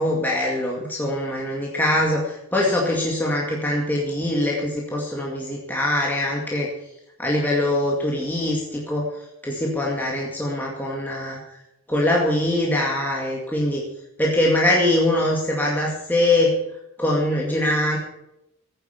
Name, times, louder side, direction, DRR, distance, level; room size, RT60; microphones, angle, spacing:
voice 1, 0.0-6.7 7.2-9.1 9.4-11.4 11.9-13.8 14.2-16.5 17.0-18.0, left 1 dB, 10° left, -3 dB, 2.1 m, -23 dB
16.0 x 9.3 x 6.9 m, 0.87 s
head